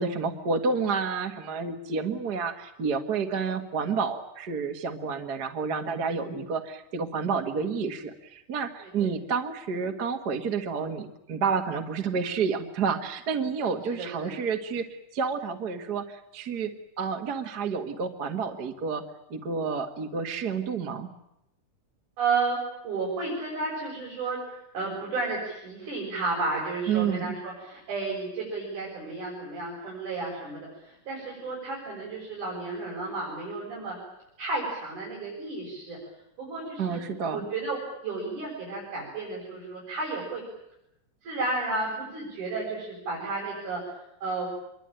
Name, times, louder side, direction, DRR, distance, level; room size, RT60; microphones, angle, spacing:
voice 1, 0.0-16.7 17.0-19.0 19.3-21.1 26.9-27.4 36.8-37.4, right 5 dB, 40° right, 5 dB, 1.6 m, -30 dB
voice 2, 13.6-14.3 22.2-22.6 22.8-34.0 34.4-36.0 36.4-37.0 37.3-40.4 41.2-43.8 44.2-44.5, right 3 dB, 70° right, -4 dB, 8.6 m, -32 dB
26.5 x 23.0 x 9.0 m, 0.83 s
omnidirectional pair, 3.7 m